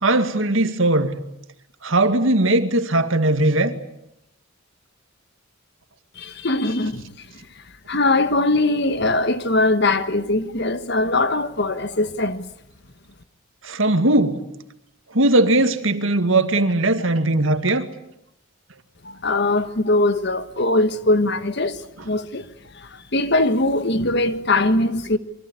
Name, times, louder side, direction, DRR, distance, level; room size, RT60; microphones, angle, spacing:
voice 1, 0.0-1.2 1.8-3.7 13.6-14.4 15.1-17.9, right 2 dB, 65° right, 2.2 m, -19 dB
voice 2, 6.1-7.3 7.9-12.5 19.0-22.5 22.7-25.2, left 2 dB, 50° left, 1.5 m, -21 dB
27.0 x 24.0 x 8.4 m
head